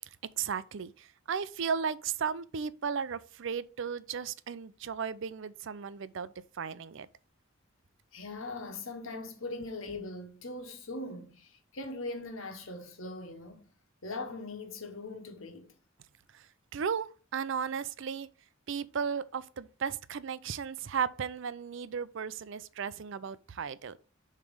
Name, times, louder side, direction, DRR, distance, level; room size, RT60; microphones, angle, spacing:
voice 1, 0.4-7.1 16.3-18.3 18.7-24.0, right 6 dB, 65° right, 0.5 m, -35 dB
voice 2, 8.1-13.6 14.0-15.7, left 2 dB, 80° left, 1.3 m, -40 dB
7.1 x 3.3 x 5.2 m
head